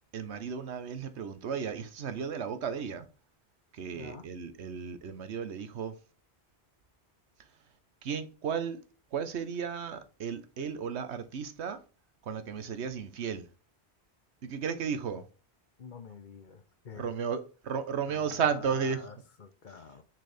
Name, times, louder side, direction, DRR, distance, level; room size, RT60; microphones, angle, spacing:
voice 1, 0.1-3.1 3.7-6.0 8.0-8.8 9.1-11.8 12.2-13.5 14.4-15.2 17.0-19.1, right 6 dB, 90° right, 1.2 m, -34 dB
voice 2, 3.9-4.2 15.8-17.1 18.1-20.0, left 5 dB, 50° left, 0.8 m, -47 dB
6.3 x 4.5 x 3.3 m
omnidirectional pair, 1.1 m